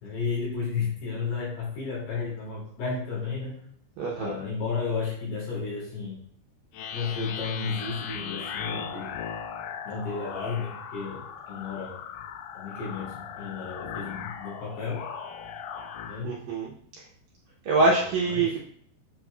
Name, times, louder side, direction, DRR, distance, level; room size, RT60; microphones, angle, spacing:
voice 1, 0.0-3.6 4.1-6.2 6.9-9.2 9.8-12.0 12.5-15.0 16.1-16.4 18.2-18.5, left 5 dB, 70° left, -6 dB, 4.4 m, -33 dB
voice 2, 4.0-4.4 16.2-17.0 17.6-18.6, right 3 dB, 75° right, -3 dB, 2.1 m, -25 dB
sound 1, 6.7-16.2, left 7 dB, 85° left, 2.2 m, -38 dB
7.7 x 6.1 x 2.3 m, 0.63 s
omnidirectional pair, 4.9 m